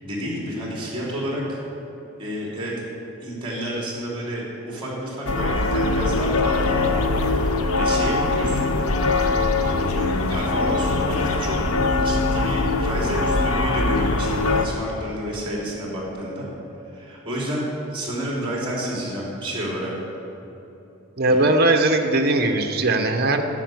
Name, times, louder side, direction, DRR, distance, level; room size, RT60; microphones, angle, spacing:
voice 1, 0.0-1.6 2.2-2.8 3.2-6.9 7.3-8.7 9.6-11.6 11.9-16.4 16.9-19.9 21.2-21.4, equal, 25° right, -4 dB, 3.1 m, -30 dB
sound 1, 5.3-14.7, left 3 dB, 75° left, 0.7 m, -22 dB
voice 2, 21.2-23.4, right 2 dB, 45° right, 5 dB, 0.9 m, -19 dB
12.0 x 5.9 x 9.2 m, 3.0 s
head